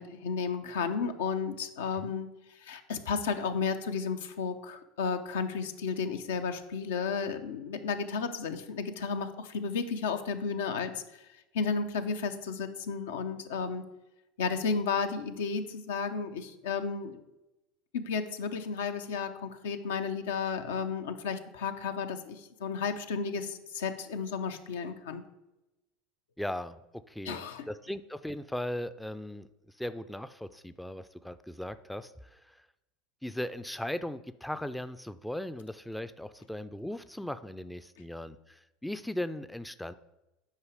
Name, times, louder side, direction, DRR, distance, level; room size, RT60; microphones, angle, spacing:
voice 1, 0.0-2.3 2.6-11.0 11.5-13.8 14.4-17.2 17.9-25.2 27.2-27.7, left 5 dB, 85° left, 8 dB, 0.7 m, -33 dB
voice 2, 26.4-26.8 27.1-29.5 29.8-32.6 33.2-39.9, left 1 dB, 5° left, 13 dB, 0.3 m, -38 dB
8.3 x 5.0 x 4.9 m, 0.96 s
hypercardioid pair, 95°, 0 cm